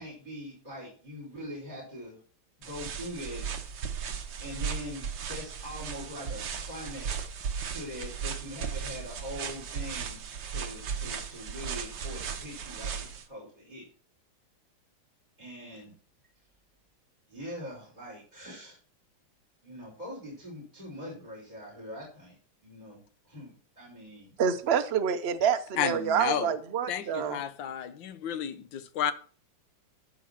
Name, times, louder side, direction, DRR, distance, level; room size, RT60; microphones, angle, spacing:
voice 1, 0.0-2.2 2.6-3.4 4.4-7.2 7.6-13.8 15.4-15.9 17.3-18.8 19.6-22.4 22.6-23.0 23.2-24.3, equal, 20° right, 5.1 m, -42 dB
sound 1, 2.6-13.2, right 7 dB, 65° right, 1.9 m, -36 dB
voice 2, 24.4-27.4, right 7 dB, 85° right, 0.5 m, -27 dB
voice 3, 25.8-26.5 26.9-29.1, left 9 dB, 70° left, 1.6 m, -32 dB
14.0 x 5.0 x 5.8 m
omnidirectional pair, 2.2 m